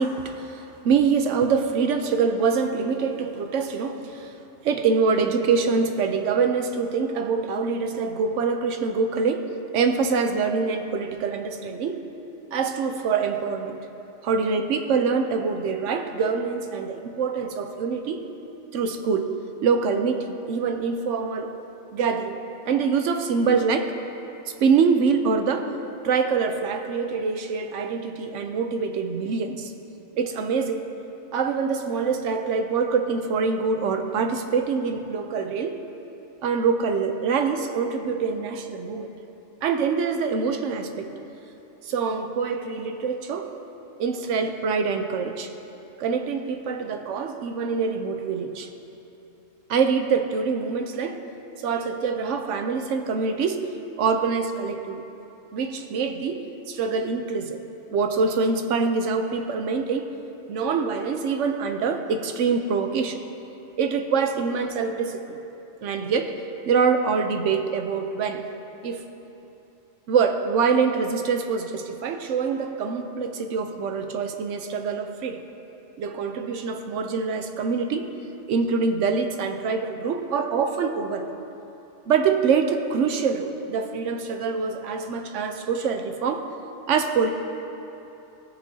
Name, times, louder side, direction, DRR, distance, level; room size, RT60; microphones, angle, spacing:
voice 1, 0.0-4.3 4.6-12.0 12.5-13.8 14.2-18.3 18.7-19.3 19.6-21.6 21.9-22.4 22.7-24.0 24.6-25.7 26.0-29.7 30.2-30.9 31.3-35.8 36.4-39.1 39.6-41.1 41.8-43.5 44.0-45.5 46.0-48.7 49.7-51.2 51.6-53.7 54.0-55.0 55.5-57.6 57.9-60.2 60.5-63.2 63.8-65.4 65.8-68.5 68.8-69.0 70.1-75.4 76.0-78.1 78.5-81.3 82.1-86.5 86.9-87.3, right 5 dB, 85° right, 7 dB, 1.0 m, -25 dB
18.5 x 6.6 x 2.7 m, 3.0 s
omnidirectional pair, 1.2 m